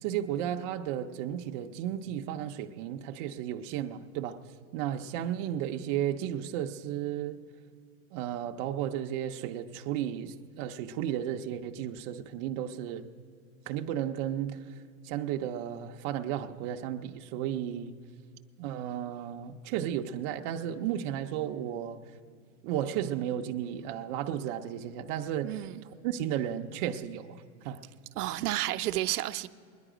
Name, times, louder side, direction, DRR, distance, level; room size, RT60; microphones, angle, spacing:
voice 1, 0.0-4.4 4.7-7.4 8.1-13.1 13.7-14.6 15.0-17.9 18.6-22.0 22.6-25.6 26.0-27.4 27.6-27.8, right 10 dB, 35° right, 0.5 m, -33 dB
voice 2, 25.4-25.8 28.2-29.5, right 15 dB, 90° right, 0.6 m, -31 dB
21.0 x 10.0 x 4.9 m
supercardioid pair, 145°, 44 cm